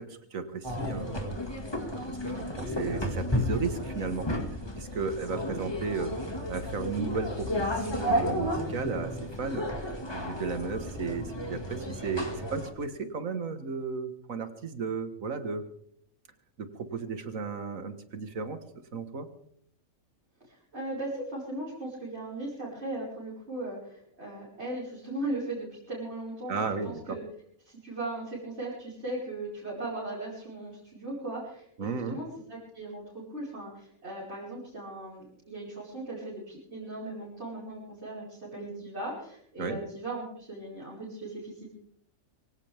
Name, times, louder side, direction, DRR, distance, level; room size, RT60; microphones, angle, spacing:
voice 1, 0.0-1.6 2.1-4.3 4.8-6.1 6.5-9.7 10.1-15.6 16.6-18.6 18.9-19.3 26.5-27.2 31.8-32.2 39.6-39.8, right 4 dB, 75° right, 9 dB, 2.0 m, -34 dB
sound 1, 0.6-12.7, equal, 20° left, 2.2 m, -33 dB
voice 2, 20.5-27.2 27.6-41.7, right 2 dB, 50° right, -8 dB, 5.5 m, -38 dB
24.0 x 17.0 x 3.5 m, 0.68 s
omnidirectional pair, 1.4 m